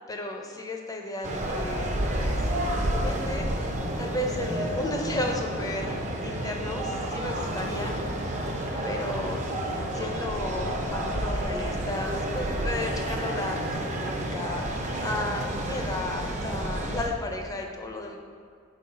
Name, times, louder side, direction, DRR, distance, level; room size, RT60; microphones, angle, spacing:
voice 1, 0.1-2.5 2.8-3.5 4.0-8.4 8.8-9.4 9.9-18.2, left 2 dB, 20° left, 2 dB, 0.5 m, -34 dB
sound 1, 1.2-17.1, right 1 dB, 35° right, 0.6 m, -30 dB
4.6 x 3.9 x 5.5 m, 2.1 s
head